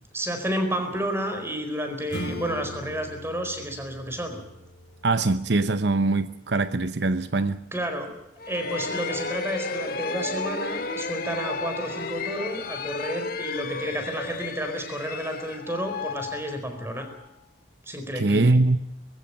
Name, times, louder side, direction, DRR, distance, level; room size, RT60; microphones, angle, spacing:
voice 1, 0.1-4.4 7.7-8.1 8.5-17.1 17.9-18.6, right 1 dB, 15° right, 6 dB, 4.5 m, -31 dB
Acoustic guitar / Strum, 2.1-7.3, left 1 dB, 80° left, 4.4 m, -41 dB
voice 2, 5.0-7.6 18.1-18.8, right 2 dB, 65° right, 12 dB, 0.8 m, -22 dB
sound 1, 8.4-17.1, left 4 dB, 55° left, 1.9 m, -33 dB
21.0 x 16.0 x 8.8 m, 0.88 s
head